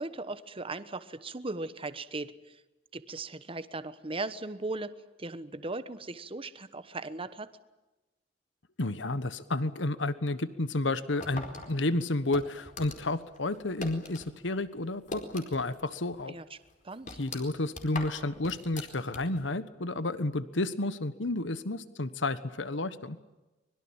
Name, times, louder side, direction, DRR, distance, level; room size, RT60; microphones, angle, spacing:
voice 1, 0.0-2.6 2.9-7.5 16.3-16.6 16.8-17.1, right 2 dB, 30° right, 12 dB, 1.2 m, -38 dB
voice 2, 8.8-16.3 17.2-23.2, left 2 dB, 90° left, 13 dB, 1.3 m, -31 dB
sound 1, 11.2-14.3 14.6-15.8 16.1-16.2 16.7-19.5, left 3 dB, 45° left, 4.6 m, -42 dB
24.5 x 22.0 x 8.8 m, 1.1 s
head